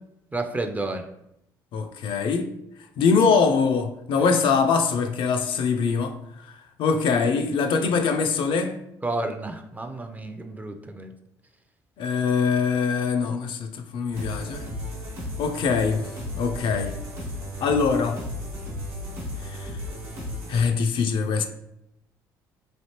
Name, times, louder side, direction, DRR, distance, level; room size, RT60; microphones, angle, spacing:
voice 1, 0.3-1.0 9.0-11.1, right 2 dB, 15° right, 0.4 m, -31 dB
voice 2, 1.7-2.5 3.0-6.2 6.8-8.7 12.0-14.7 15.4-16.1 16.3-16.9 17.6-18.2 19.5-19.7 20.5-21.4, left 5 dB, 60° left, 0.4 m, -23 dB
sound 1, 14.1-20.7, left 1 dB, 85° right, 1.1 m, -34 dB
3.3 x 2.5 x 2.8 m
hypercardioid pair, 65°, 10 cm